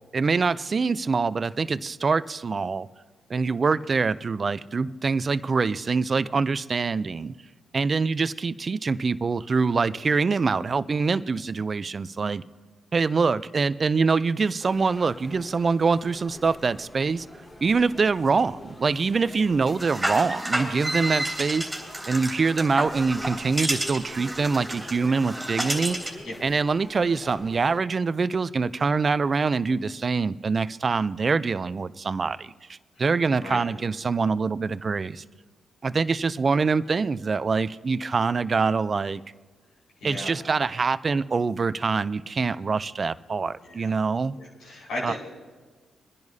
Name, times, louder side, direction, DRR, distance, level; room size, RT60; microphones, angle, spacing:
voice 1, 0.1-2.9 3.3-7.3 7.7-12.4 12.9-17.3 17.6-21.7 22.1-32.5 33.0-35.2 35.8-39.2 40.0-44.4 45.0-45.1, right 4 dB, 45° right, 0.5 m, -24 dB
sound 1, 14.6-27.8, left 1 dB, 25° left, 2.5 m, -45 dB
sound 2, 19.8-26.2, right 1 dB, 10° right, 3.4 m, -30 dB
voice 2, 33.3-33.7 40.0-40.4 43.6-43.9 44.4-45.1, left 1 dB, 75° left, 4.6 m, -35 dB
25.0 x 10.5 x 2.8 m
supercardioid pair, 55°, 0 cm